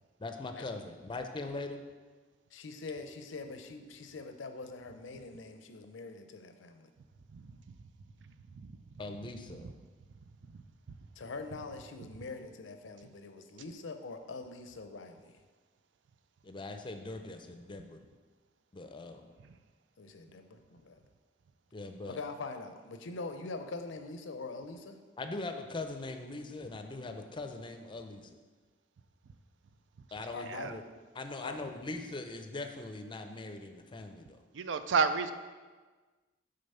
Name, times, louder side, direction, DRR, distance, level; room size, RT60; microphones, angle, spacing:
voice 1, 0.2-1.8 9.0-9.7 16.4-18.0 18.7-19.3 21.7-22.2 25.2-28.3 30.1-30.8 31.2-34.4, left 2 dB, 25° left, 6 dB, 0.5 m, -41 dB
voice 2, 2.5-6.9 11.2-15.4 20.0-21.0 22.1-25.0 30.3-30.7 31.4-31.6, left 3 dB, 85° left, 7 dB, 0.6 m, -43 dB
voice 3, 8.3-8.7 10.5-10.6 19.4-19.5 30.5-30.7 34.5-35.3, right 5 dB, 70° right, 11 dB, 0.4 m, -32 dB
6.7 x 3.9 x 5.5 m, 1.4 s
head